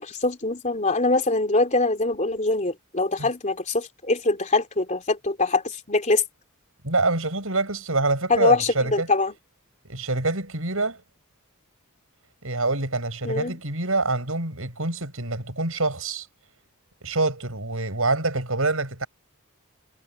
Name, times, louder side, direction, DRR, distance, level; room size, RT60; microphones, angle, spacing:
voice 1, 0.0-6.2 8.3-9.3 13.2-13.6, left 3 dB, 35° left, 3.4 m, -23 dB
voice 2, 6.8-9.1 9.9-11.0 12.4-16.3 17.0-19.1, right 3 dB, 70° right, 6.8 m, -26 dB
head